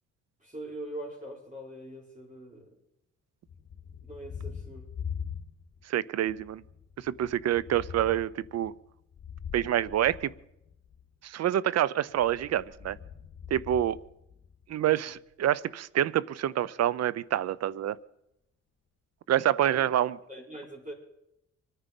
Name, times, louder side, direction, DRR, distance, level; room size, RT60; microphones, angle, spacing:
voice 1, 0.4-2.7 4.0-4.9 19.7-19.8 20.3-20.9, right 1 dB, 25° right, -2 dB, 4.9 m, -42 dB
Thunder, 3.5-5.9 6.2-11.0 12.1-14.7, left 7 dB, 40° left, 1.8 m, -43 dB
voice 2, 5.9-6.6 7.0-8.7 9.5-10.3 11.2-13.0 13.5-14.0 14.7-18.0 19.3-20.2, right 11 dB, 60° right, 21 dB, 0.6 m, -27 dB
25.0 x 9.9 x 5.3 m, 0.83 s
cardioid pair, 90°, 30 cm